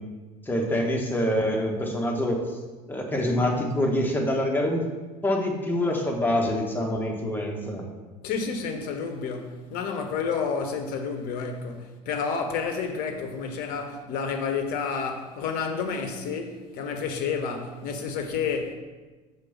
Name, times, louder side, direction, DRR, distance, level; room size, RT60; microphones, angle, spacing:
voice 1, 0.5-2.4 2.9-4.8 5.2-7.9, left 1 dB, 10° left, 1.2 m, -25 dB
voice 2, 8.2-18.7, left 5 dB, 45° left, 0.9 m, -30 dB
5.2 x 3.9 x 5.7 m
figure-of-eight pair, 70°, 20 cm